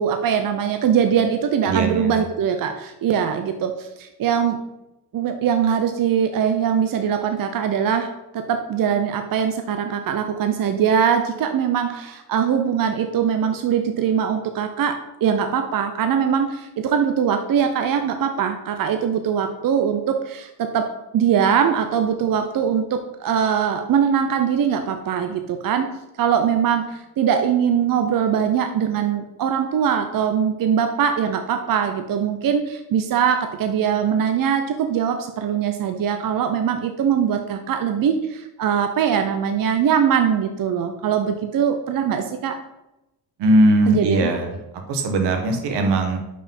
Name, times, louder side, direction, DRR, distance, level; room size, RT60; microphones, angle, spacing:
voice 1, 0.0-4.6 5.1-20.9 21.1-25.9 26.2-42.6 43.9-44.3, right 8 dB, 55° right, 6 dB, 0.8 m, -22 dB
voice 2, 1.6-2.2 43.4-44.5 44.9-46.2, right 1 dB, 85° right, 5 dB, 1.4 m, -19 dB
5.5 x 5.2 x 5.4 m, 0.92 s
cardioid pair, 85°, 41 cm